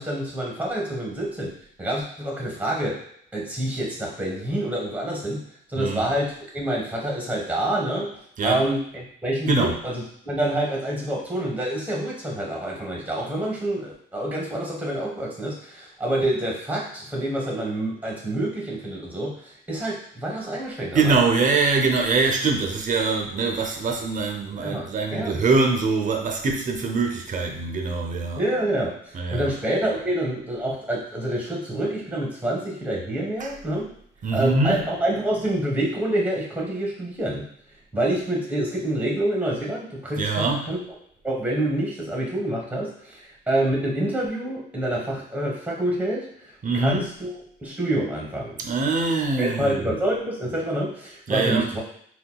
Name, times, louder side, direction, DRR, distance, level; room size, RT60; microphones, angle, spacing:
voice 1, 0.0-1.5 1.8-3.0 3.3-5.4 5.7-21.2 24.5-25.4 28.4-33.9 34.3-37.5 37.9-40.8 41.2-47.3 47.6-48.6 49.4-51.8, right 1 dB, 5° right, -2 dB, 1.1 m, -27 dB
voice 2, 5.8-6.1 8.4-8.6 9.5-9.8 20.9-28.5 29.1-29.6 33.4-33.6 34.2-34.8 40.2-40.7 46.6-47.1 48.6-50.0 51.3-51.7, right 3 dB, 40° right, 3 dB, 0.5 m, -23 dB
3.7 x 2.2 x 2.3 m, 0.65 s
cardioid pair, 90°, 20 cm